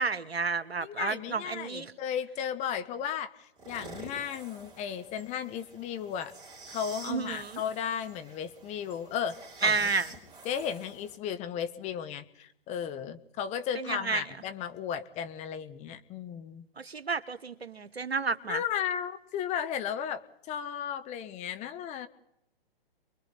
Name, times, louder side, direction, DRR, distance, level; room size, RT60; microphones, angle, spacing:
voice 1, 0.0-1.9 7.0-7.6 9.6-10.1 13.7-14.2 16.8-18.6, right 5 dB, 90° right, 1.2 m, -31 dB
voice 2, 0.8-6.3 6.7-9.9 10.4-16.7 18.5-22.1, left 8 dB, 25° left, 1.2 m, -35 dB
sound 1, 3.6-11.2, right 3 dB, 15° right, 5.0 m, -49 dB
28.5 x 22.0 x 4.1 m
figure-of-eight pair, 125°, 30 cm